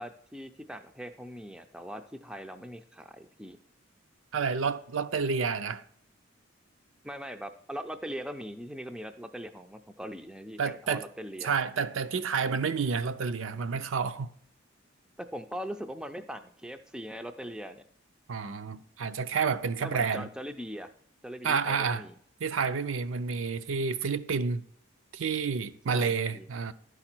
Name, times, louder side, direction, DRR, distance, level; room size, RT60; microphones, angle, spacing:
voice 1, 0.0-3.6 7.0-11.6 15.2-17.8 19.8-20.9 21.2-22.1 25.9-26.5, equal, 5° right, 0.3 m, -41 dB
voice 2, 4.3-5.8 10.6-11.0 11.4-14.3 18.3-20.3 21.4-22.0 22.4-24.6 25.1-26.7, right 5 dB, 75° right, 0.5 m, -29 dB
11.0 x 4.9 x 4.4 m
head